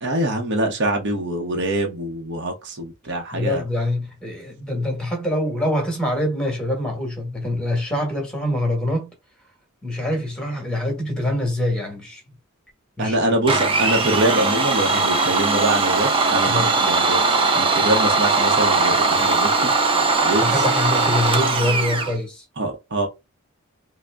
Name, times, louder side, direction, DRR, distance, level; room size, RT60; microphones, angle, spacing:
voice 1, 0.0-3.6 13.0-17.2 17.5-19.7 20.2-20.6 22.6-23.1, right 1 dB, 55° right, 0.8 m, -24 dB
voice 2, 3.3-9.1 9.8-12.2 13.0-13.2 16.4-16.8 20.4-22.4, left 1 dB, 5° left, 1.2 m, -24 dB
Domestic sounds home sounds, 13.5-22.1, right 3 dB, 25° right, 0.5 m, -19 dB
3.7 x 2.0 x 3.3 m
head